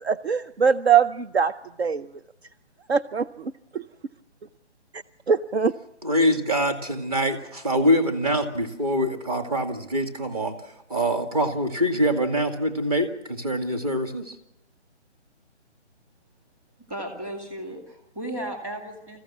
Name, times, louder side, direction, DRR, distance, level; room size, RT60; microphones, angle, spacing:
voice 1, 0.0-1.5 1.8-2.1 2.9-3.8 4.9-5.7, right 6 dB, 65° right, 10 dB, 0.8 m, -23 dB
voice 2, 6.0-10.5 10.9-14.3, equal, 35° right, 5 dB, 2.2 m, -24 dB
voice 3, 16.9-19.2, right 1 dB, 15° right, 4 dB, 2.5 m, -35 dB
26.0 x 15.0 x 7.2 m, 0.92 s
hypercardioid pair, 170°, 34 cm